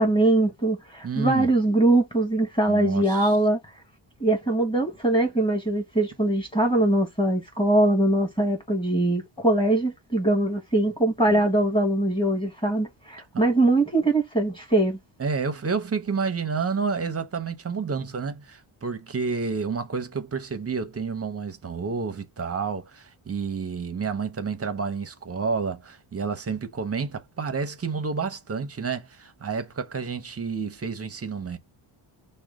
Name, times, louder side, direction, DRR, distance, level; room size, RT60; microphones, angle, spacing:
voice 1, 0.0-3.6 4.2-15.0, right 2 dB, 10° left, 1.8 m, -22 dB
voice 2, 1.0-1.5 2.7-3.3 11.3-11.4 15.2-31.6, right 5 dB, 30° right, 0.7 m, -30 dB
6.1 x 2.3 x 3.6 m
wide cardioid pair, 135°, 50 cm